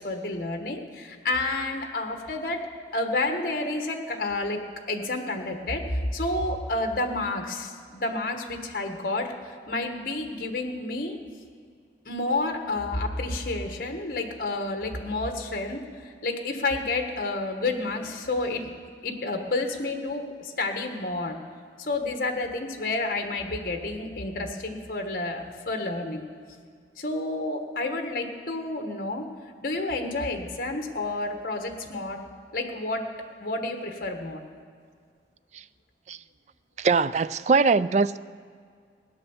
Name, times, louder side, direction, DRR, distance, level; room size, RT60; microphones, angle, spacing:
voice 1, 0.0-11.2 12.0-18.7 19.0-21.4 21.8-26.2 27.0-29.3 29.6-32.2 32.5-33.1 33.4-34.4, left 2 dB, 50° left, 4 dB, 1.4 m, -30 dB
voice 2, 36.8-38.2, right 4 dB, 40° right, 16 dB, 0.3 m, -21 dB
16.5 x 9.7 x 7.2 m, 2.1 s
head